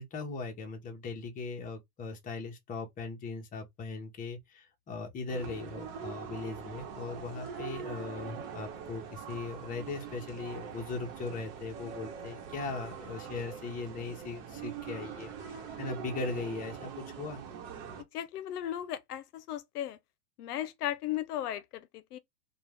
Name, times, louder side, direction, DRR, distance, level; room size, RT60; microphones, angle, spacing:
voice 1, 0.0-17.4, left 3 dB, 20° left, 0.7 m, -39 dB
sound 1, 5.3-18.0, right 7 dB, 50° right, 1.0 m, -43 dB
voice 2, 18.1-20.0 20.4-22.2, left 12 dB, 80° left, 0.6 m, -36 dB
2.4 x 2.3 x 3.2 m
hypercardioid pair, 125°, 46 cm